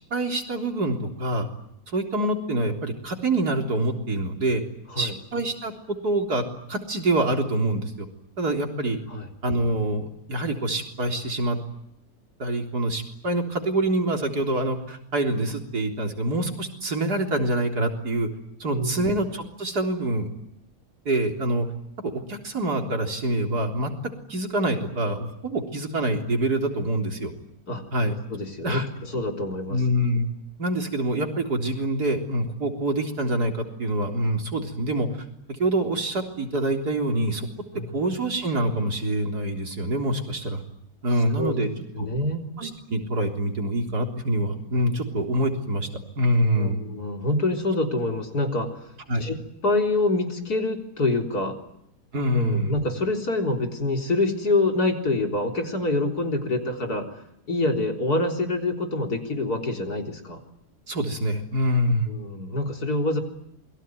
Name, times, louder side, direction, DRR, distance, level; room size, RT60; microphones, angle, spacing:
voice 1, 0.1-1.5 1.9-4.6 5.0-8.1 8.4-9.0 9.4-11.6 12.4-18.3 18.6-20.3 21.1-21.7 22.0-23.9 24.3-27.3 27.9-28.1 28.6-28.9 29.7-30.3 30.6-35.1 35.5-37.5 37.9-40.6 41.0-41.7 42.0-42.1 42.6-45.9 46.2-46.8 49.1-49.3 52.1-52.7 60.9-62.1, right 1 dB, 75° right, 3 dB, 4.3 m, -25 dB
voice 2, 18.7-19.1 27.7-27.8 28.3-29.8 37.7-38.0 41.4-41.6 42.0-42.4 46.6-48.9 49.2-51.6 52.3-57.2 57.5-60.4 62.1-63.2, left 2 dB, 70° left, 3 dB, 4.4 m, -26 dB
28.0 x 22.5 x 9.4 m, 0.78 s
omnidirectional pair, 1.7 m